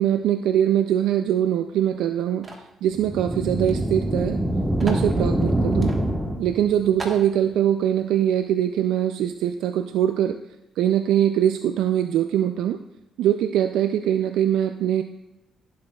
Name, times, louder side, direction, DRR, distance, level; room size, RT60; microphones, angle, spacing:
voice 1, 0.0-2.5 2.8-4.4 4.8-5.9 6.4-10.4 10.8-12.8 13.2-15.0, right 10 dB, 85° right, 8 dB, 0.3 m, -22 dB
sound 1, 2.4-2.7 3.6-3.8 4.0-4.1 4.8-5.1 5.8-6.0 6.5-6.6 7.0-7.3, right 2 dB, 35° right, 1.4 m, -36 dB
sound 2, 2.9-6.8, right 1 dB, 10° right, 1.2 m, -24 dB
14.5 x 7.7 x 2.3 m, 0.90 s
cardioid pair, 90°, 0 cm